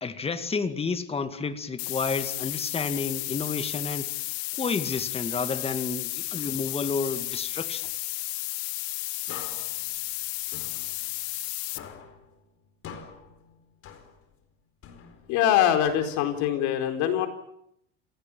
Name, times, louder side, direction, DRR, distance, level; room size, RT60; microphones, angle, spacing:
voice 1, 0.0-4.2 4.6-7.9, left 4 dB, 20° left, 10 dB, 2.0 m, -30 dB
sound 1, 1.8-11.8, left 20 dB, 85° left, 1.6 m, -33 dB
sound 2, 9.3-11.5 11.8-14.4 14.8-16.5, left 6 dB, 45° left, 4.4 m, -47 dB
voice 2, 15.3-17.3, left 10 dB, 65° left, 6 dB, 4.5 m, -23 dB
28.0 x 17.0 x 8.7 m, 0.76 s
supercardioid pair, 125°, 31 cm